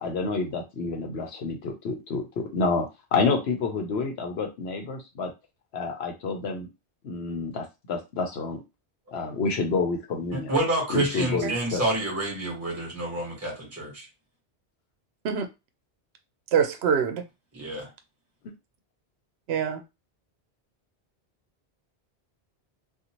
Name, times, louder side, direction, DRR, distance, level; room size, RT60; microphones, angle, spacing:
voice 1, 0.0-5.3 5.7-6.7 7.0-8.6 9.1-10.5 10.9-11.8, left 4 dB, 70° left, 3 dB, 0.9 m, -29 dB
voice 2, 10.3-14.1 17.5-17.9, right 1 dB, 15° right, -2 dB, 1.2 m, -28 dB
voice 3, 16.5-17.2 19.5-19.8, right 7 dB, 75° right, 7 dB, 0.8 m, -25 dB
2.6 x 2.4 x 2.9 m, 0.24 s
omnidirectional pair, 1.1 m